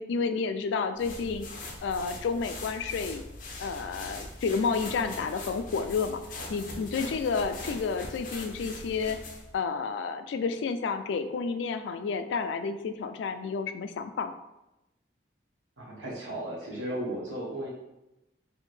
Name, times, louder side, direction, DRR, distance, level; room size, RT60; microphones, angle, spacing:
voice 1, 0.0-1.5 1.8-3.2 3.6-6.2 6.5-9.2 9.5-14.3, left 5 dB, 75° left, 8 dB, 0.3 m, -30 dB
sound 1, 1.0-9.5, left 2 dB, 45° left, 0.6 m, -42 dB
voice 2, 15.8-17.7, right 1 dB, 80° right, -5 dB, 1.3 m, -35 dB
4.2 x 2.6 x 3.2 m, 0.92 s
head